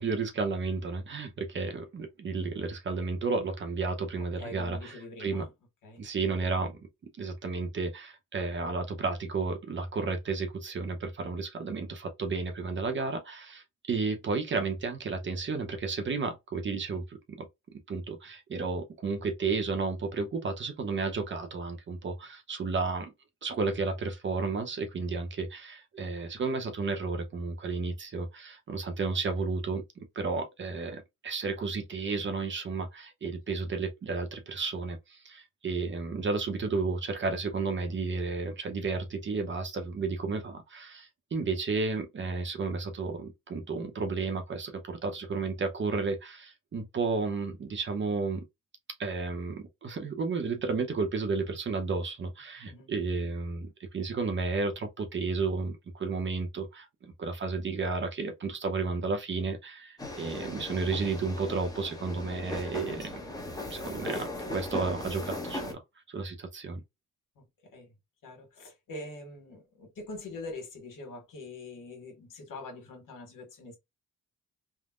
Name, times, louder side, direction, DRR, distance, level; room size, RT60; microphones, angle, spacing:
voice 1, 0.0-5.4 6.0-6.8 7.2-17.4 17.7-23.1 23.4-48.4 49.0-63.2 63.7-65.8 66.1-66.8, right 4 dB, 35° right, 0.7 m, -32 dB
voice 2, 4.2-5.5 5.8-6.1 33.5-33.6 52.7-52.9 67.4-67.5 67.7-67.9 68.2-73.8, left 2 dB, 80° left, 1.5 m, -44 dB
sound 1, 60.0-65.7, left 1 dB, 10° left, 0.8 m, -38 dB
3.6 x 2.1 x 2.4 m
cardioid pair, 130°, 32 cm